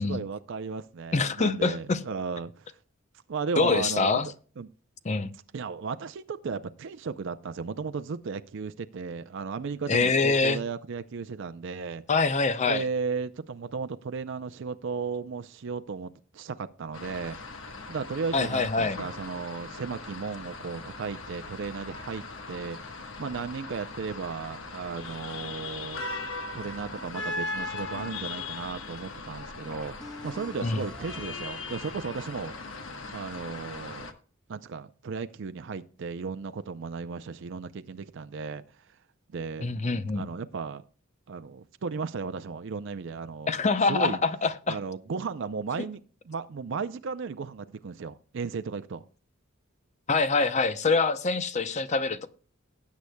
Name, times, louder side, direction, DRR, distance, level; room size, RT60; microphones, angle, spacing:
voice 1, 0.0-2.7 3.3-4.2 4.6-4.7 5.5-12.0 12.7-17.4 17.9-22.8 23.2-26.0 26.5-32.5 33.1-34.1 34.5-38.6 39.3-39.7 40.2-40.8 41.3-43.5 43.9-44.2 44.7-46.0 46.3-49.0, right 5 dB, 65° right, 0.5 m, -35 dB
voice 2, 1.1-2.0 3.6-4.3 5.0-5.3 9.9-10.6 12.1-12.8 18.3-19.0 30.6-30.8 39.6-40.3 43.5-44.8 50.1-52.3, left 4 dB, 35° left, 0.6 m, -25 dB
sound 1, 16.9-34.1, left 3 dB, 70° left, 1.2 m, -39 dB
sound 2, 27.0-28.5 29.1-29.2 29.7-33.9, left 1 dB, 5° left, 1.3 m, -49 dB
19.0 x 8.3 x 2.2 m
head